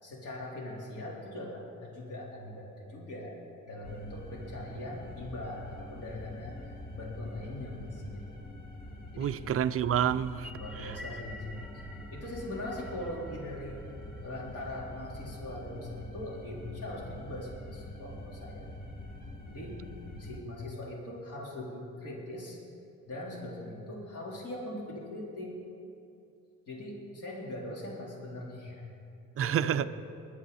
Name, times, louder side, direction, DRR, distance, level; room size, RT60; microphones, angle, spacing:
voice 1, 0.0-3.4 3.7-8.4 9.1-9.4 10.6-11.7 12.1-13.8 14.2-18.7 19.5-19.8 20.2-22.6 23.1-25.6 26.7-28.9 29.4-29.9, left 1 dB, 55° left, 3.9 m, -41 dB
sound 1, 3.8-20.4, left 1 dB, 30° left, 1.7 m, -45 dB
voice 2, 9.2-10.5 10.8-11.0 29.4-29.9, right 9 dB, 50° right, 0.5 m, -28 dB
sound 2, 10.2-14.8, left 2 dB, ahead, 1.4 m, -50 dB
22.5 x 11.5 x 4.2 m
cardioid pair, 110°, 30 cm